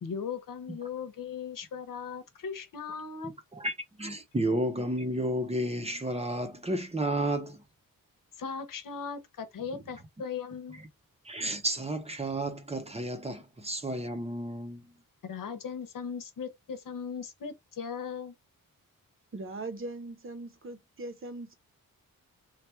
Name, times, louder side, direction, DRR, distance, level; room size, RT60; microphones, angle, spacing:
voice 1, 0.0-3.3 8.4-10.8 15.2-18.3, left 6 dB, 65° left, 0.9 m, -38 dB
voice 2, 4.0-7.6 9.7-9.8 11.2-14.9, right 1 dB, 20° right, 0.7 m, -32 dB
voice 3, 19.3-21.6, right 2 dB, 35° right, 0.9 m, -40 dB
3.4 x 2.4 x 4.4 m
wide cardioid pair, 125°, 35 cm